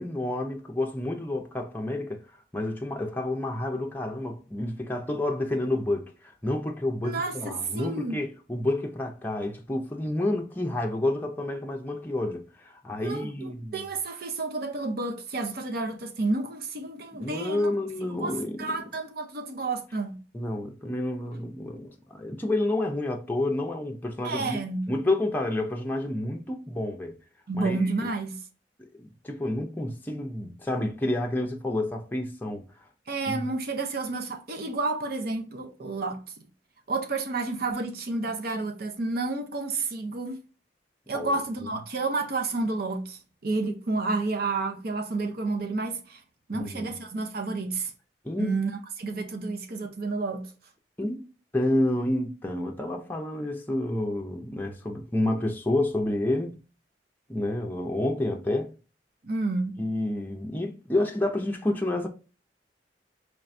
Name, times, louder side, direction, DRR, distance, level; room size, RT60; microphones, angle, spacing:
voice 1, 0.0-2.2 2.5-6.1 6.4-13.9 17.1-18.6 20.3-24.6 24.9-27.1 27.5-27.8 29.0-32.6 33.3-33.5 41.1-41.3 46.5-46.9 48.2-48.5 51.0-51.2 51.5-56.6 57.3-58.7 59.8-62.1, left 1 dB, 10° left, 0.5 m, -29 dB
voice 2, 7.0-8.2 13.0-17.7 18.1-20.2 24.2-24.9 27.5-28.4 33.1-36.2 36.9-40.4 41.1-46.2 46.5-47.9 48.4-50.5 51.0-51.1 59.2-59.8, right 3 dB, 60° right, 0.7 m, -30 dB
4.5 x 3.3 x 2.5 m
head